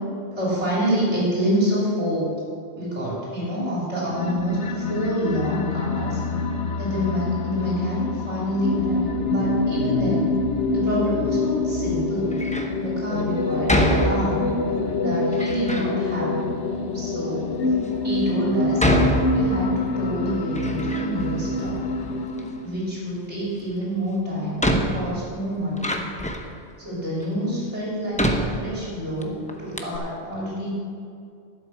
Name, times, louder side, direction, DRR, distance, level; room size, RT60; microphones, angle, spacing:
voice 1, 0.4-2.3 2.8-6.2 6.8-10.3 10.7-12.4 12.8-14.4 15.0-16.3 16.9-17.6 18.0-21.8 22.6-25.9 26.8-30.7, equal, 90° right, -6 dB, 3.8 m, -27 dB
sound 1, 4.1-22.7, left 3 dB, 85° left, 1.1 m, -26 dB
Door, 12.3-12.8 13.7-14.6 15.3-15.9 16.7-16.8 17.5-17.6 18.8-19.9 20.3-21.3 21.6-22.5 23.8-23.9 24.6-26.6 27.2-27.3 28.1-29.2 29.5-29.6 29.8-30.0, equal, 10° left, 0.7 m, -25 dB
11.5 x 8.1 x 6.3 m, 2.4 s
omnidirectional pair, 1.1 m